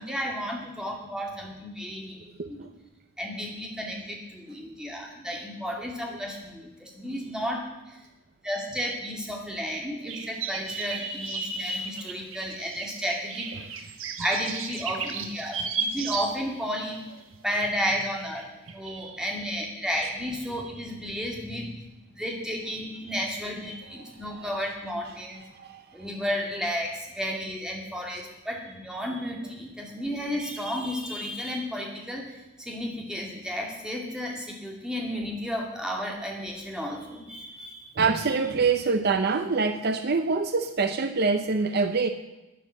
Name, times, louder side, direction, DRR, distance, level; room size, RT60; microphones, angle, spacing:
voice 1, 0.0-2.7 3.2-8.0 8.4-13.5 14.2-17.0 17.4-18.5 18.7-21.8 22.2-25.4 25.9-32.2 32.6-38.0, equal, 5° right, -1 dB, 2.5 m, -32 dB
voice 2, 2.4-2.7 24.0-24.4 25.5-25.8 38.0-42.1, right 4 dB, 50° right, 9 dB, 0.7 m, -25 dB
sound 1, 10.1-16.7 17.2-17.3 18.2-18.4 18.7-19.0, right 5 dB, 70° right, 1.3 m, -35 dB
12.0 x 9.7 x 7.6 m, 1.0 s
head